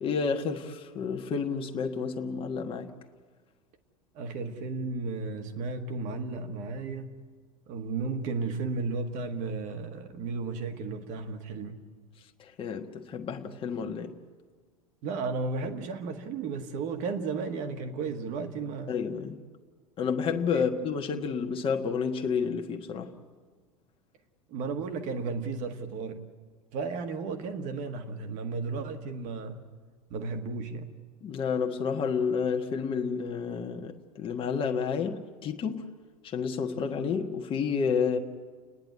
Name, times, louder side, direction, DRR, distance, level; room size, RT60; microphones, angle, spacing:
voice 1, 0.0-2.9 12.4-14.1 18.9-19.4 20.0-23.1 31.2-35.9 36.2-38.2, left 6 dB, 30° left, 1.3 m, -30 dB
voice 2, 4.2-7.2 7.7-11.8 15.0-18.9 20.5-20.7 24.5-26.3 26.7-29.7 30.1-30.9, right 4 dB, 40° right, 1.8 m, -34 dB
30.0 x 10.5 x 9.4 m
figure-of-eight pair, 85°, 19 cm